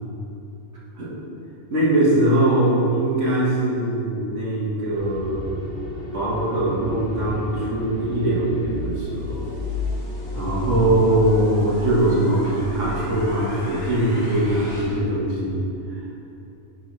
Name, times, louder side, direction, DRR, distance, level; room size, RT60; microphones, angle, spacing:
voice 1, 1.7-5.4 6.1-9.5 10.3-15.6, right 1 dB, 70° right, -7 dB, 1.9 m, -21 dB
sound 1, 4.9-14.9, left 2 dB, 45° left, 1.5 m, -32 dB
8.9 x 5.3 x 3.2 m, 2.9 s
omnidirectional pair, 1.3 m